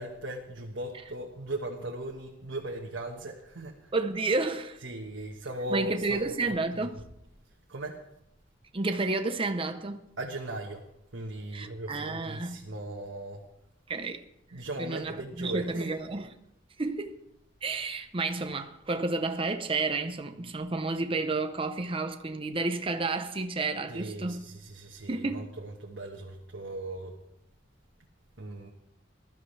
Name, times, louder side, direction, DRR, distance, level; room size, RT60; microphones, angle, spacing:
voice 1, 0.0-3.9 4.8-6.3 7.7-8.0 10.2-10.9 11.1-13.4 14.5-16.0 23.9-27.1 28.4-28.7, right 1 dB, 80° right, 1.4 m, -38 dB
voice 2, 3.9-4.8 5.7-6.9 8.7-10.0 11.5-12.6 13.9-14.2 14.8-16.3 16.8-17.2 17.6-24.4 25.1-25.5, right 3 dB, 30° right, 0.7 m, -31 dB
20.0 x 12.5 x 3.3 m
head